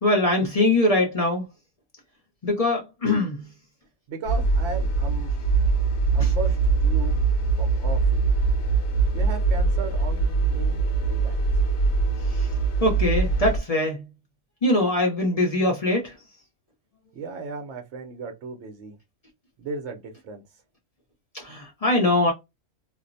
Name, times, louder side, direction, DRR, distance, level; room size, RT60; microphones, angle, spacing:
voice 1, 0.0-1.4 2.4-3.4 6.2-6.3 12.3-12.5 12.8-14.0 14.6-16.1 21.3-22.3, left 2 dB, 40° left, 0.6 m, -22 dB
voice 2, 4.1-5.3 6.1-7.2 7.6-8.2 9.1-11.4 17.1-19.0 19.6-20.4, right 3 dB, 70° right, 0.8 m, -36 dB
sound 1, 4.3-13.6, right 4 dB, 65° left, 0.9 m, -22 dB
2.5 x 2.0 x 2.5 m
omnidirectional pair, 1.4 m